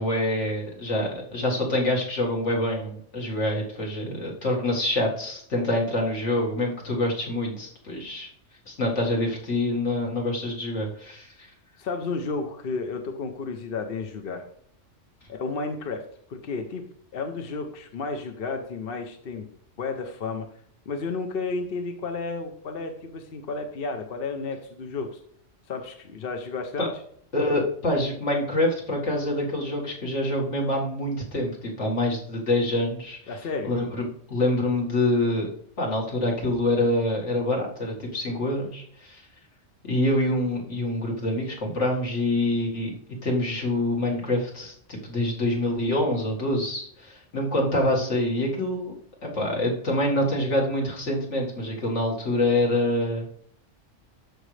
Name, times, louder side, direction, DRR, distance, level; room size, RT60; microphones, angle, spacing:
voice 1, 0.0-8.3 8.7-11.5 26.8-26.9 27.3-33.4 33.6-35.5 35.8-39.2 39.8-42.9 43.2-48.9 49.2-53.3, left 1 dB, 70° left, -2 dB, 2.2 m, -26 dB
voice 2, 11.8-14.4 15.3-16.0 16.3-16.8 17.1-19.5 19.8-20.5 20.9-25.2 25.7-26.9 33.3-33.7, left 4 dB, 55° left, 5 dB, 0.9 m, -32 dB
13.0 x 5.1 x 3.2 m, 0.63 s
omnidirectional pair, 1.3 m